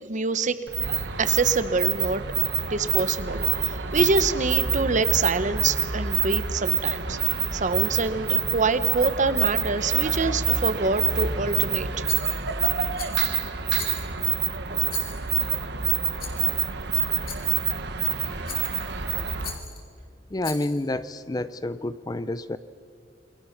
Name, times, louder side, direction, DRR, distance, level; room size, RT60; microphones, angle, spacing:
voice 1, 0.0-0.6 1.2-2.2 2.7-7.2 7.5-12.1, right 3 dB, 40° right, 12 dB, 1.0 m, -26 dB
sound 1, 0.7-19.6, right 9 dB, 60° right, 1.5 m, -26 dB
Rattle, 12.1-12.6 13.0-13.3 13.8-14.3 14.9-15.4 16.2-16.5 17.3-17.7 18.5-18.9 19.4-19.8 20.4-20.9, left 6 dB, 50° left, 3.3 m, -39 dB
voice 2, 20.3-22.6, left 2 dB, 20° left, 14 dB, 0.5 m, -29 dB
28.5 x 23.0 x 5.9 m, 2.1 s
head